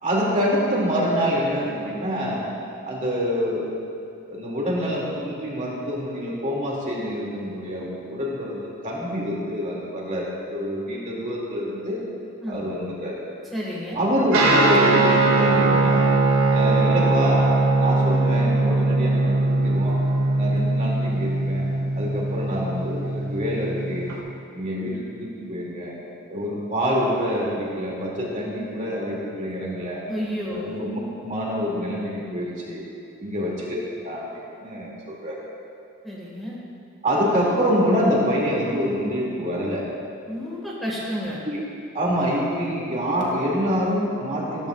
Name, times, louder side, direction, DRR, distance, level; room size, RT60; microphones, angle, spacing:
voice 1, 0.0-2.5 2.8-3.7 4.3-12.0 12.5-13.2 13.9-16.1 16.5-17.5 17.8-20.0 20.4-21.7 22.0-24.1 24.5-25.9 26.3-30.0 30.5-32.8 33.2-33.8 34.0-35.4 37.0-39.8 41.4-41.6 41.9-44.7, equal, 35° right, -4 dB, 2.3 m, -26 dB
voice 2, 13.5-14.0 30.1-30.8 36.0-36.6 40.3-41.4, equal, ahead, -6 dB, 1.6 m, -31 dB
Guitar, 14.3-24.1, right 2 dB, 75° right, 2.0 m, -20 dB
14.5 x 14.0 x 2.4 m, 2.7 s
head